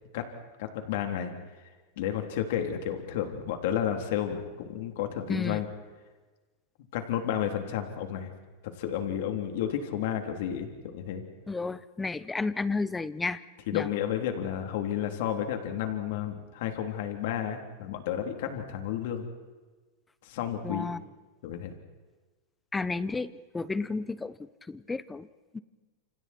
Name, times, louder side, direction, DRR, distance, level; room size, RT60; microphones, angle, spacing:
voice 1, 0.6-1.3 2.0-5.7 6.9-8.3 8.6-11.2 13.7-19.3 20.2-20.9 21.4-21.7, left 10 dB, 65° left, 5 dB, 3.6 m, -31 dB
voice 2, 5.3-5.6 11.5-13.4 13.7-13.9 20.6-21.0 22.7-24.4 24.7-25.3 25.5-25.6, left 3 dB, 10° left, 16 dB, 0.9 m, -32 dB
29.5 x 27.5 x 4.6 m, 1.3 s
supercardioid pair, 145°, 0 cm